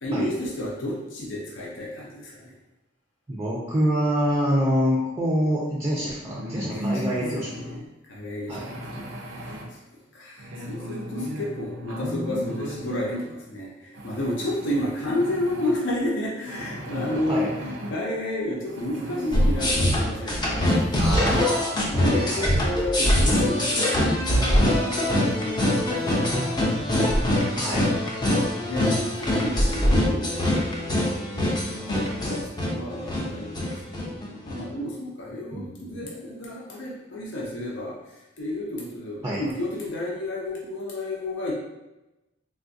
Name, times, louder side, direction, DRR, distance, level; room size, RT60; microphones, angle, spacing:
voice 1, 0.0-2.5 6.6-7.0 7.5-9.5 10.1-20.9 21.9-25.8 26.0-27.0 27.3-31.9 32.2-38.0 38.4-41.5, left 1 dB, 75° left, -3 dB, 0.6 m, -32 dB
voice 2, 3.3-7.8 8.5-8.7 17.3-17.5 21.0-22.6 27.2-27.9 35.5-36.1 39.2-39.4, equal, 15° right, -6 dB, 0.4 m, -27 dB
sound 1, 6.2-7.8 8.5-9.7 10.4-13.2 13.9-15.7 16.5-17.9 18.6-19.8 20.2-20.3 20.6-21.5, equal, 75° right, 0.5 m, -36 dB
sound 2, 19.3-34.6, left 1 dB, 25° left, 0.6 m, -23 dB
3.4 x 2.4 x 2.6 m, 0.98 s
head